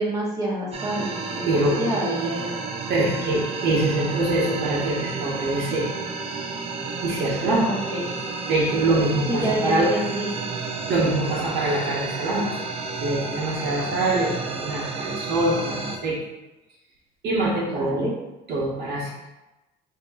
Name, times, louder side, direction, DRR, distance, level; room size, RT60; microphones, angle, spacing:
voice 1, 0.0-2.6 7.6-8.1 9.3-10.3 17.6-18.1, right 1 dB, 20° right, -5 dB, 1.2 m, -28 dB
sound 1, 0.7-16.0, right 4 dB, 35° right, 0.6 m, -31 dB
voice 2, 1.5-1.8 2.9-5.9 7.0-7.7 8.5-9.9 10.9-12.7 13.0-16.2 17.2-18.1 18.5-19.1, right 2 dB, 75° right, -5 dB, 1.3 m, -24 dB
3.7 x 2.9 x 3.8 m, 1.0 s
cardioid pair, 110°, 17 cm